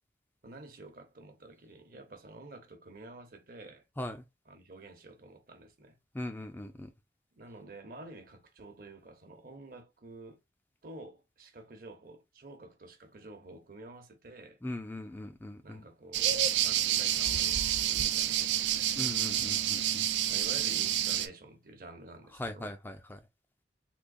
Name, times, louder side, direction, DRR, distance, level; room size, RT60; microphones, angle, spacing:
voice 1, 0.4-3.8 4.5-6.0 7.3-10.4 10.8-14.6 15.6-18.7 20.3-22.7, right 2 dB, 50° right, 0.9 m, -49 dB
voice 2, 6.1-6.9 14.6-15.8 19.0-20.0 22.4-23.2, left 1 dB, 10° left, 0.3 m, -40 dB
sound 1, 16.1-21.3, right 11 dB, 80° right, 0.4 m, -29 dB
3.7 x 2.8 x 2.4 m
head